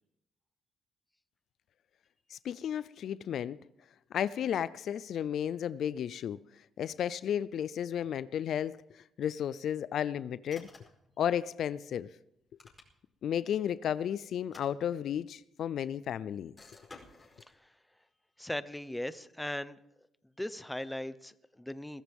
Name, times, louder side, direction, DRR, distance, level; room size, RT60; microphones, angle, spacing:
voice 1, 2.3-3.6 4.1-6.4 6.8-10.7 11.2-12.1 13.2-16.5, left 9 dB, 70° left, 0.5 m, -33 dB
sound 1, 10.5-11.1 12.4-13.2 14.4-15.3 16.6-17.5, left 3 dB, 25° left, 4.8 m, -54 dB
voice 2, 18.4-19.8 20.4-22.0, left 1 dB, 5° left, 0.9 m, -38 dB
22.0 x 14.5 x 3.6 m
cardioid pair, 90°, 0 cm